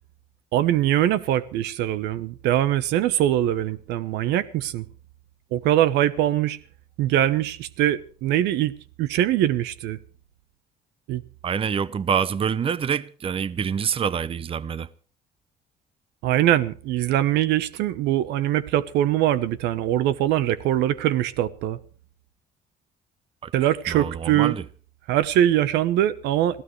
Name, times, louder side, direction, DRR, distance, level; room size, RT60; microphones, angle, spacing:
voice 1, 0.5-4.8 5.5-6.6 7.0-10.0 11.1-11.2 16.2-21.8 23.5-24.5 25.1-26.6, right 12 dB, 90° right, 1.0 m, -22 dB
voice 2, 11.4-14.9 23.4-23.5 23.9-24.6, right 7 dB, 35° right, 0.7 m, -26 dB
26.5 x 16.0 x 3.2 m
cardioid pair, 110°, 17 cm